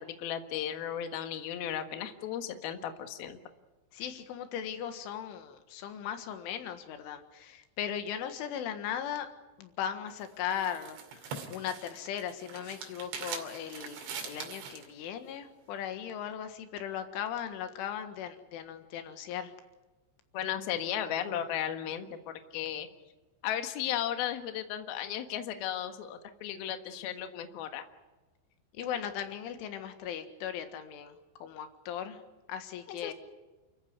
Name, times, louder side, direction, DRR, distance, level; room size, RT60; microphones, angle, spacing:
voice 1, 0.0-3.4 20.3-22.2 22.5-22.9 23.4-27.8 32.9-33.1, left 10 dB, 60° left, 7 dB, 3.1 m, -35 dB
voice 2, 3.9-9.3 9.6-19.5 28.7-32.2 32.5-33.1, left 9 dB, 85° left, 8 dB, 4.1 m, -38 dB
sound 1, 10.1-14.9, right 6 dB, 75° right, 4.9 m, -42 dB
29.5 x 14.5 x 9.7 m, 1.2 s
omnidirectional pair, 5.4 m